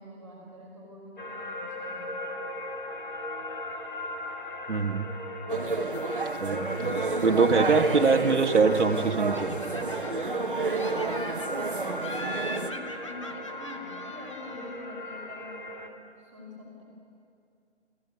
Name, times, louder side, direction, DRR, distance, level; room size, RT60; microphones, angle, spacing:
voice 1, 0.0-2.2 10.0-15.7 16.2-16.8, left 1 dB, 5° left, -8 dB, 3.6 m, -46 dB
sound 1, 1.2-15.9, left 1 dB, 45° left, 2.3 m, -38 dB
voice 2, 4.7-5.1 6.4-9.6, right 4 dB, 80° right, 5 dB, 1.7 m, -24 dB
sound 2, 5.5-12.7, right 3 dB, 50° right, 1.3 m, -30 dB
Laughter, 9.3-10.4 10.7-11.7 12.0-14.8, equal, 25° left, 0.9 m, -42 dB
24.0 x 15.5 x 9.7 m, 2.4 s
hypercardioid pair, 180°, 35 cm